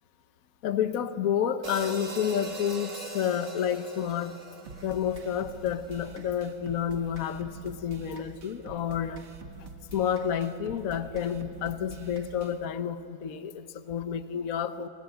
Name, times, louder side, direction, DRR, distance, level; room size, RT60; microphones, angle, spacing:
voice 1, 0.6-4.4 4.8-9.2 9.9-14.9, left 8 dB, 55° left, 1.3 m, -30 dB
sound 1, 1.6-6.0, right 4 dB, 45° right, 2.4 m, -42 dB
sound 2, 4.7-12.7, right 4 dB, 75° right, 2.0 m, -47 dB
29.5 x 24.5 x 7.9 m
omnidirectional pair, 1.9 m